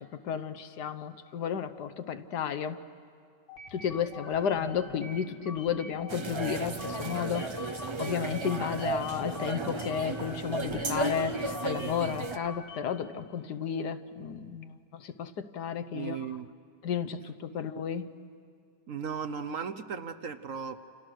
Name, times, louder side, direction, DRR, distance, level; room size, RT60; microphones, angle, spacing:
voice 1, 0.1-2.8 3.7-7.5 8.0-16.2 16.8-18.1, left 7 dB, 70° left, 11 dB, 1.5 m, -33 dB
sound 1, 3.5-13.0, left 3 dB, 90° left, 2.7 m, -45 dB
sound 2, 6.1-12.4, right 3 dB, 35° right, 0.5 m, -34 dB
voice 2, 15.9-16.5 17.5-17.7 18.9-20.8, right 6 dB, 55° right, 9 dB, 1.1 m, -36 dB
29.5 x 28.5 x 6.5 m, 2.3 s
omnidirectional pair, 1.8 m